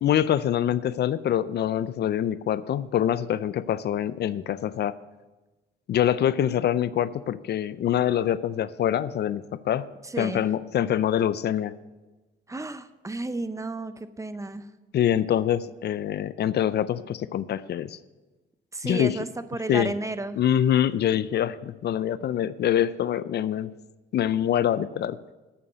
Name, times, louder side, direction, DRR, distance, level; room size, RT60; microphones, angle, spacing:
voice 1, 0.0-4.9 5.9-9.9 10.2-11.7 14.9-18.0 18.8-19.2 19.7-19.9 20.4-23.7 24.1-25.2, left 10 dB, 55° left, 16 dB, 0.4 m, -25 dB
voice 2, 10.0-10.4 12.5-14.7 18.7-20.4, right 2 dB, 15° right, 12 dB, 0.6 m, -32 dB
8.6 x 7.0 x 7.9 m, 1.2 s
cardioid pair, 90°, 20 cm